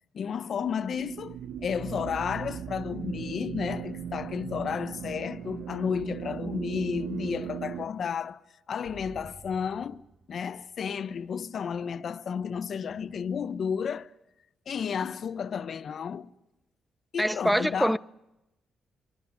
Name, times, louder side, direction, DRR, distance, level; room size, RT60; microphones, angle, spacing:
voice 1, 0.1-8.4 8.7-14.1 14.7-16.3 17.1-18.0, left 7 dB, 60° left, 1.1 m, -32 dB
sound 1, 0.6-7.9, right 8 dB, 80° right, 1.3 m, -37 dB
sound 2, 8.8-10.6 12.9-13.8, right 4 dB, 50° right, 4.4 m, -52 dB
voice 2, 17.2-18.0, equal, ahead, 0.8 m, -24 dB
25.5 x 24.5 x 6.9 m
cardioid pair, 70°, 0 cm